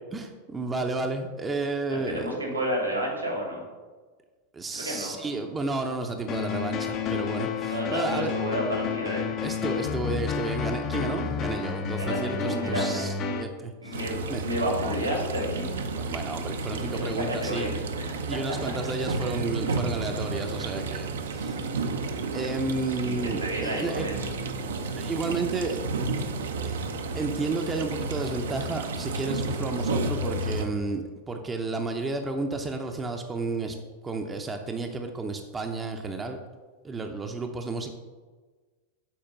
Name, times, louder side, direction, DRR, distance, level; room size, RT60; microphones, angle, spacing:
voice 1, 0.1-2.4 4.5-8.3 9.4-14.0 14.3-14.4 15.9-17.8 18.3-21.6 22.3-24.1 25.0-25.8 26.6-26.8 27.1-33.8 34.0-36.4 36.8-37.9, right 3 dB, 15° right, 4 dB, 0.6 m, -32 dB
voice 2, 1.9-3.6 4.7-5.1 7.7-9.3 12.0-13.0 13.8-15.7 16.9-18.2 23.0-24.3, equal, 85° right, -1 dB, 2.5 m, -31 dB
sound 1, 6.3-13.4, left 6 dB, 35° left, 0.6 m, -30 dB
sound 2, 13.9-30.7, right 3 dB, 65° right, 0.6 m, -31 dB
7.4 x 4.4 x 5.5 m, 1.4 s
figure-of-eight pair, 90°, 0 cm